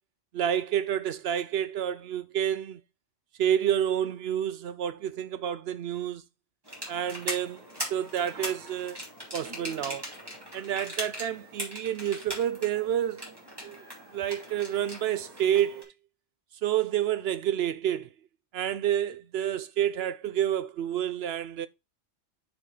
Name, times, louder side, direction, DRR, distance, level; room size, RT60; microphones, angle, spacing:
voice 1, 0.3-2.8 3.4-6.2 6.9-7.6 7.9-9.0 9.3-10.1 10.5-13.4 13.6-13.8 14.1-15.9 16.6-18.1 18.5-21.7, right 10 dB, 70° right, 0.8 m, -29 dB
sound 1, 6.6-15.8, equal, 20° right, 2.6 m, -40 dB
6.4 x 5.0 x 3.9 m
omnidirectional pair, 1.1 m